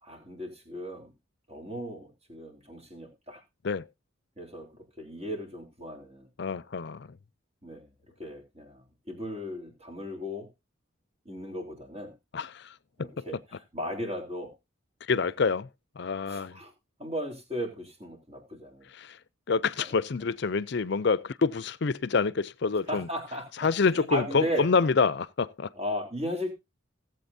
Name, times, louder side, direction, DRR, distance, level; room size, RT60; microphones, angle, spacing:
voice 1, 0.0-1.1 1.5-3.4 4.4-6.3 7.6-7.9 8.2-10.5 11.3-12.1 13.0-14.5 16.3-16.7 17.0-18.9 19.8-20.0 22.9-24.7 25.8-26.5, equal, 30° right, 3.5 m, -36 dB
voice 2, 6.4-7.1 12.3-12.6 13.0-13.1 15.1-15.7 16.0-16.6 19.0-19.2 19.5-23.1 23.6-25.7, left 4 dB, 55° left, 0.5 m, -27 dB
17.5 x 7.9 x 2.7 m
head